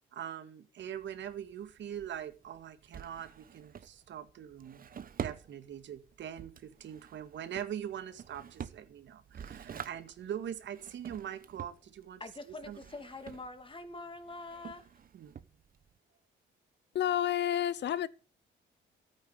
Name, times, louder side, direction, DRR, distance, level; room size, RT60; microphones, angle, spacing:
voice 1, 0.1-4.9 5.2-12.2 12.7-12.8 15.1-15.4, right 9 dB, 70° right, 2.0 m, -42 dB
Drawer open or close, 0.8-16.0, right 8 dB, 45° right, 1.1 m, -48 dB
voice 2, 12.2-14.9, left 2 dB, 25° left, 2.7 m, -45 dB
voice 3, 16.9-18.1, left 11 dB, 60° left, 0.9 m, -29 dB
13.5 x 9.4 x 6.9 m
cardioid pair, 90°, 20 cm